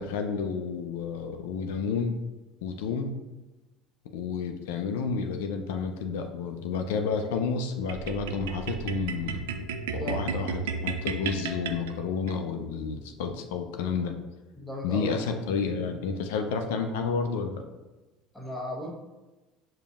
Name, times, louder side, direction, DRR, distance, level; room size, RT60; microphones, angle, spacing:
voice 1, 0.0-2.2 2.6-3.1 4.1-9.6 9.9-14.2 14.8-17.6, left 5 dB, 80° left, 5 dB, 0.3 m, -30 dB
sound 1, 7.9-12.4, right 5 dB, 80° right, 0.3 m, -34 dB
voice 2, 14.6-15.1 18.3-18.9, equal, ahead, -3 dB, 1.1 m, -35 dB
5.0 x 2.7 x 2.4 m, 1.1 s
hypercardioid pair, 75°, 0 cm